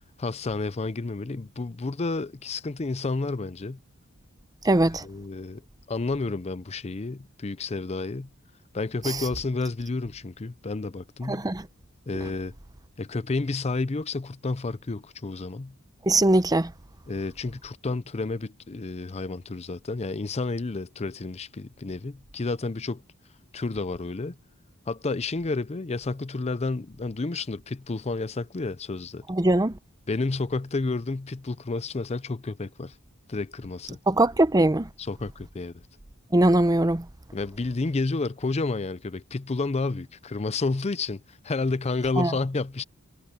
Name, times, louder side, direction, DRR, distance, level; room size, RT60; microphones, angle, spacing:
voice 1, 0.2-3.8 5.0-5.6 5.9-8.3 8.7-11.5 12.1-12.5 13.0-15.7 17.1-23.0 23.5-24.4 24.9-29.2 30.1-32.9 33.3-34.0 35.0-35.7 37.3-42.8, left 3 dB, 30° left, 0.6 m, -30 dB
voice 2, 4.6-5.1 9.0-9.2 11.3-11.7 16.1-16.7 29.3-29.8 34.1-34.9 36.3-37.1 42.2-42.3, right 1 dB, 15° right, 0.7 m, -21 dB
head